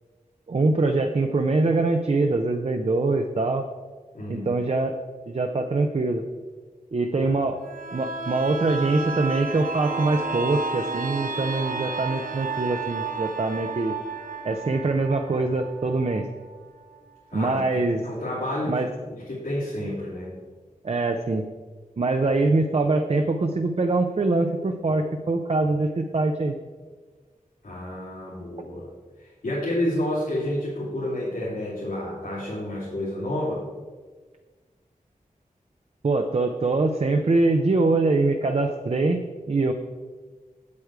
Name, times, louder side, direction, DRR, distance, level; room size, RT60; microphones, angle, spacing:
voice 1, 0.5-3.6 4.3-4.9 5.3-6.2 6.9-7.6 7.9-13.9 14.4-16.3 17.3-18.1 18.7-18.9 20.8-21.4 22.0-26.6 36.0-39.7, right 3 dB, 45° right, 5 dB, 0.6 m, -23 dB
voice 2, 4.1-4.5 7.2-7.3 17.3-17.6 18.0-20.3 27.6-28.9 29.2-33.6, left 1 dB, 85° left, -10 dB, 3.0 m, -30 dB
sound 1, 7.6-17.2 17.6-17.7, right 4 dB, 75° right, 0.9 m, -32 dB
8.4 x 8.0 x 4.7 m, 1.4 s
wide cardioid pair, 85°, 14 cm